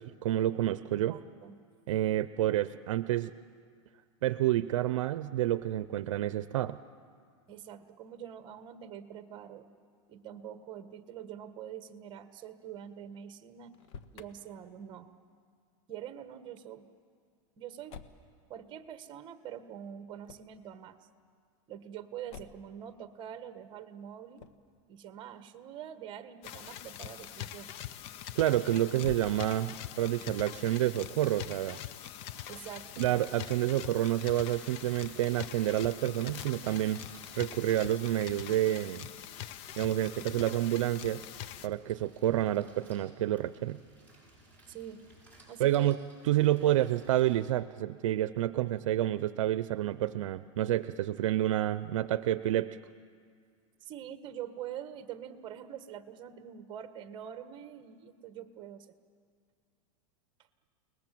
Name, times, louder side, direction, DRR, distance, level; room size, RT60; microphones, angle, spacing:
voice 1, 0.0-1.2 1.9-3.3 4.2-6.8 28.4-31.8 33.0-37.0 37.4-39.1 39.8-41.2 41.6-43.8 45.6-46.0 46.2-52.8, right 13 dB, 75° right, 14 dB, 0.7 m, -29 dB
voice 2, 1.1-1.6 7.5-9.7 10.1-13.7 14.1-15.1 15.9-16.9 17.6-18.0 18.5-21.0 21.7-24.5 24.9-27.7 32.5-33.1 41.9-42.0 44.7-45.0 45.5-46.0 46.6-46.9 53.8-58.9, right 9 dB, 30° right, 9 dB, 1.5 m, -45 dB
Motor vehicle (road), 13.6-14.3 17.9-18.3 20.2-20.6 22.3-22.7 24.3-24.7 28.9-29.8, left 6 dB, 65° left, 1.4 m, -48 dB
sound 1, 26.4-41.7, left 11 dB, 40° left, 0.7 m, -44 dB
sound 2, 32.3-47.4, right 1 dB, 10° left, 8.0 m, -60 dB
29.5 x 20.0 x 7.7 m, 2.1 s
supercardioid pair, 145°, 16 cm